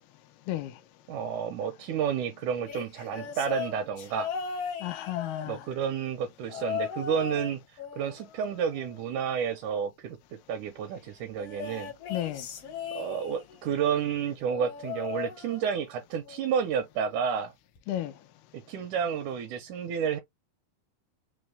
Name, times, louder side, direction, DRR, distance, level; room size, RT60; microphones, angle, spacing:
voice 1, 1.1-4.3 5.5-7.6 8.0-10.2 10.5-11.9 12.9-17.5 18.5-20.2, right 7 dB, 75° right, 1.8 m, -30 dB
sound 1, 2.6-5.9 6.5-7.5 7.8-9.3 11.4-13.5 14.4-15.9 16.2-16.6 17.7-17.8, left 7 dB, 70° left, 1.4 m, -38 dB
voice 2, 4.8-5.6 12.1-12.4 17.9-18.1, left 13 dB, 85° left, 2.5 m, -32 dB
6.1 x 2.1 x 3.2 m
omnidirectional pair, 4.4 m